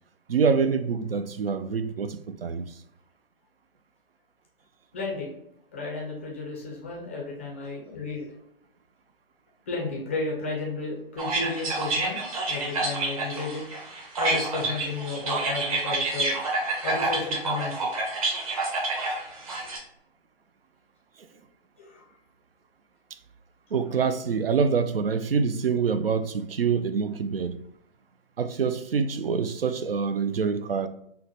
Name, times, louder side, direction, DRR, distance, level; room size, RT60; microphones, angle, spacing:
voice 1, 0.3-2.6 23.7-27.6 28.4-30.9, right 5 dB, 75° right, 0.5 m, -26 dB
voice 2, 4.9-5.3 5.7-8.3 9.7-12.2 12.5-13.6 14.2-16.4 16.8-17.9 18.4-18.5 21.8-22.0, left 3 dB, 15° left, 0.4 m, -33 dB
sound 1, 11.2-19.8, right 2 dB, 35° right, 1.0 m, -28 dB
5.6 x 2.2 x 2.6 m
figure-of-eight pair, 135°, 30 cm